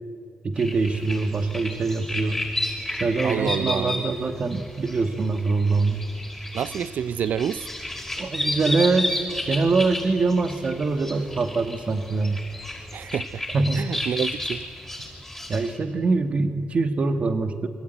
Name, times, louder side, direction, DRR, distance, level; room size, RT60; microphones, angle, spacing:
voice 1, 0.4-2.4 3.0-6.0 8.2-12.4 13.5-13.8 15.5-17.7, right 3 dB, 40° right, 1.5 m, -24 dB
sound 1, 0.6-15.8, left 1 dB, 5° left, 5.4 m, -33 dB
voice 2, 3.2-4.1 6.5-7.7 12.9-13.4 13.7-14.7, right 8 dB, 65° right, 0.6 m, -28 dB
27.0 x 23.5 x 9.1 m
cardioid pair, 130°, 3 cm